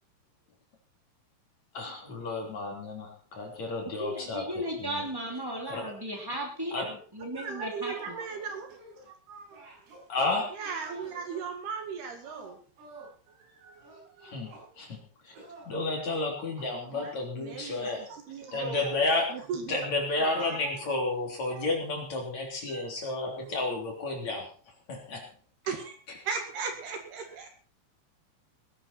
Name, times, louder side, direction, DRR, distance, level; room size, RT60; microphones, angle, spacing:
voice 1, 1.7-5.0 5.7-5.9 6.7-6.9 10.1-10.6 14.2-15.0 15.2-15.3 15.7-18.1 18.5-19.4 19.7-24.5 24.9-25.3, left 2 dB, 40° left, 1 dB, 3.9 m, -32 dB
voice 2, 4.0-8.2, equal, 20° right, 0 dB, 0.6 m, -36 dB
voice 3, 7.3-8.8 9.1-9.7 10.5-12.6 13.0-13.1 13.4-14.6 16.9-19.0 19.3-19.8 20.2-20.8 21.5-21.7 22.7-22.8 23.4-23.5 25.7-26.0 26.3-27.5, right 5 dB, 60° right, 5 dB, 3.5 m, -38 dB
sound 1, 7.5-9.1 9.5-11.5 12.2-13.2 13.8-14.7 15.3-15.7 16.6-17.2, right 2 dB, 80° right, 9.5 m, -51 dB
20.0 x 11.5 x 4.3 m, 0.40 s
omnidirectional pair, 5.9 m